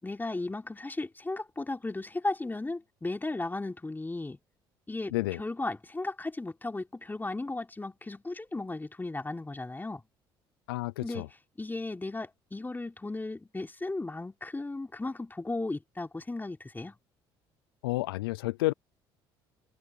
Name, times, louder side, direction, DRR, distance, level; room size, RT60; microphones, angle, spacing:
voice 1, 0.0-4.4 4.9-10.0 11.0-11.3 11.6-17.0, left 2 dB, 15° left, 3.7 m, -35 dB
voice 2, 10.7-11.3 17.8-18.7, left 20 dB, 90° left, 0.6 m, -30 dB
hypercardioid pair, 65°, 12 cm